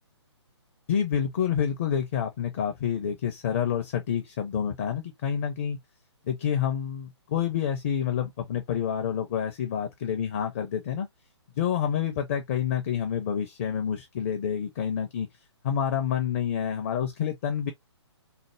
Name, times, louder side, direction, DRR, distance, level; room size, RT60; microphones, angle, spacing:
voice 1, 0.9-5.8 6.3-11.1 11.6-15.3 15.6-17.7, left 8 dB, 30° left, 0.5 m, -28 dB
3.2 x 2.0 x 2.9 m
figure-of-eight pair, 130°, 15 cm